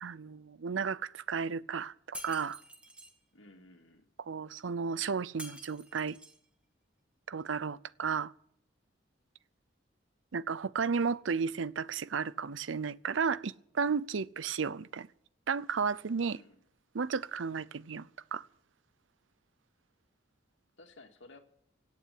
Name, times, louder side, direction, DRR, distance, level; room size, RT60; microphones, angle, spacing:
voice 1, 0.0-2.6 4.3-6.2 7.3-8.3 10.3-15.1 15.5-16.4 16.9-18.5, right 5 dB, 80° right, 0.6 m, -33 dB
Shatter, 2.1-3.1 5.4-6.4, equal, 5° right, 1.7 m, -47 dB
voice 2, 3.3-4.1 16.2-16.6 20.8-21.4, left 2 dB, 75° left, 2.3 m, -55 dB
17.0 x 8.6 x 9.2 m
head